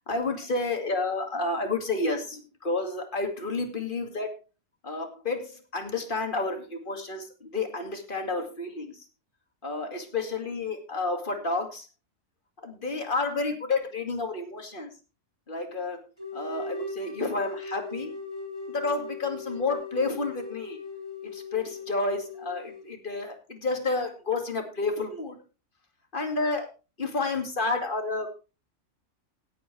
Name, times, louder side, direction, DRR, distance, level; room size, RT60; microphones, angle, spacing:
voice 1, 0.1-4.3 4.8-9.0 9.6-11.9 12.6-14.9 15.5-16.0 16.3-18.1 18.7-20.8 21.2-25.4 26.1-26.7 27.0-28.4, left 3 dB, 40° left, 4 dB, 2.4 m, -30 dB
sound 1, 16.2-22.9, left 2 dB, 20° right, 3.7 m, -38 dB
17.5 x 8.6 x 3.3 m, 0.32 s
omnidirectional pair, 1.4 m